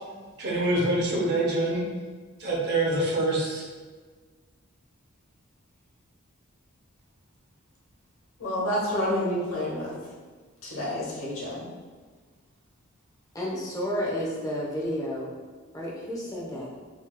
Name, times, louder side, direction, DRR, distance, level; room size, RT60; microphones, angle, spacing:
voice 1, 0.4-1.8 2.4-3.6, right 2 dB, 50° right, -3 dB, 0.8 m, -25 dB
voice 2, 8.4-9.9 10.6-11.7, left 1 dB, 70° left, -5 dB, 1.0 m, -29 dB
voice 3, 13.3-15.3 15.7-16.7, equal, 15° left, -5 dB, 0.6 m, -31 dB
3.3 x 2.6 x 2.2 m, 1.4 s
head